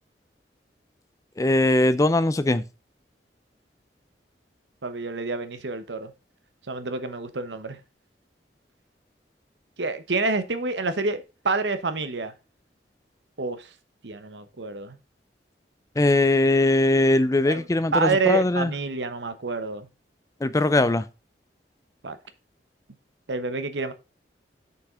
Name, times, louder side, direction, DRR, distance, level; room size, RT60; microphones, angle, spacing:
voice 1, 1.4-2.6 16.0-18.7 20.4-21.0, left 2 dB, 20° left, 0.4 m, -20 dB
voice 2, 4.8-6.1 6.7-7.8 9.8-12.3 13.4-13.6 14.0-15.0 17.5-17.6 17.9-19.9 22.0-22.2 23.3-23.9, right 3 dB, 90° right, 1.0 m, -28 dB
6.8 x 5.8 x 3.8 m
head